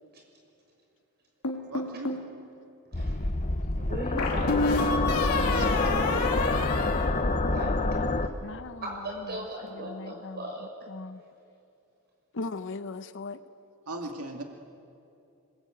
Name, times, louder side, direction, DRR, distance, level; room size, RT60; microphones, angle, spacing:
sound 1, 1.4-2.3 4.2-7.8, left 3 dB, 90° left, 2.9 m, -29 dB
voice 1, 1.7-2.2 5.5-6.9 13.9-14.4, right 2 dB, 80° right, 2 dB, 2.2 m, -39 dB
sound 2, 2.9-8.3, left 2 dB, 35° left, 1.0 m, -27 dB
voice 2, 2.9-3.3 3.7-5.3 7.5-7.8 8.8-10.7, equal, 45° right, 1 dB, 6.4 m, -38 dB
voice 3, 8.0-8.8 9.9-10.4 10.9-11.2 12.3-13.4, left 3 dB, 60° left, 12 dB, 0.9 m, -38 dB
26.0 x 21.0 x 9.0 m, 2.7 s
head